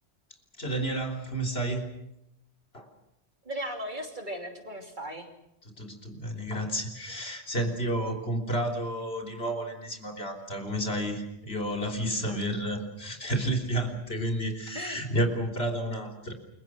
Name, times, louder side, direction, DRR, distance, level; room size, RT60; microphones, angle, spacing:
voice 1, 0.6-1.9 2.7-2.9 5.7-16.3, right 1 dB, 60° left, 3 dB, 3.7 m, -31 dB
voice 2, 3.4-5.3 12.1-12.4 14.7-15.0, right 1 dB, 45° right, 3 dB, 3.1 m, -37 dB
29.0 x 23.0 x 6.1 m, 0.82 s
omnidirectional pair, 1.2 m